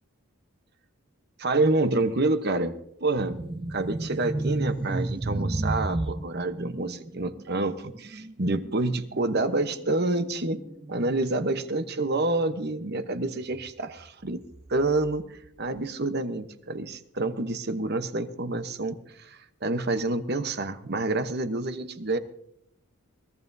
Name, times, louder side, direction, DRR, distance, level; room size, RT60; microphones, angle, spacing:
voice 1, 1.4-2.7 3.0-3.4 3.7-10.6 10.9-14.4 14.7-22.2, right 2 dB, 45° right, 10 dB, 0.9 m, -28 dB
sound 1, 3.2-13.2 13.4-13.7 14.4-15.5, right 2 dB, 25° right, 0.4 m, -34 dB
22.0 x 15.0 x 2.7 m, 0.75 s
head